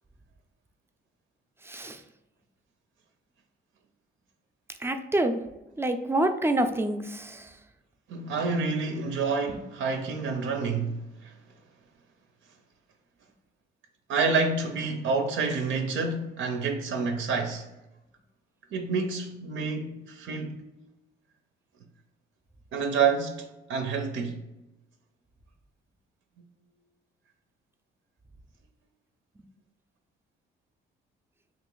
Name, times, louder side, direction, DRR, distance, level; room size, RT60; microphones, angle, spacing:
voice 1, 1.7-2.0 4.8-5.4 5.8-7.4, right 1 dB, 10° right, 0.4 m, -27 dB
voice 2, 8.1-10.9 11.2-11.3 14.1-17.7 18.7-20.6 22.7-24.4, right 4 dB, 75° right, 0.5 m, -28 dB
2.9 x 2.5 x 3.7 m
cardioid pair, 90°, 20 cm